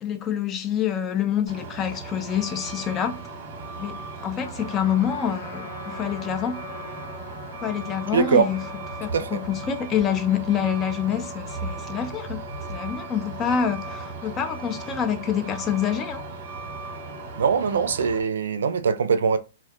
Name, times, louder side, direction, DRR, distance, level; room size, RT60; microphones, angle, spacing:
voice 1, 0.0-3.2 3.8-6.6 7.6-8.6 9.0-12.4 12.7-16.2, left 8 dB, 20° left, 0.3 m, -26 dB
Truck, 1.5-18.2, right 3 dB, 45° right, 0.9 m, -37 dB
Trumpet, 4.4-9.1, left 3 dB, 80° left, 0.8 m, -42 dB
voice 2, 8.1-8.5 9.1-9.4 17.4-19.4, right 6 dB, 90° right, 0.4 m, -22 dB
2.3 x 2.1 x 2.6 m
hypercardioid pair, 155°, 0 cm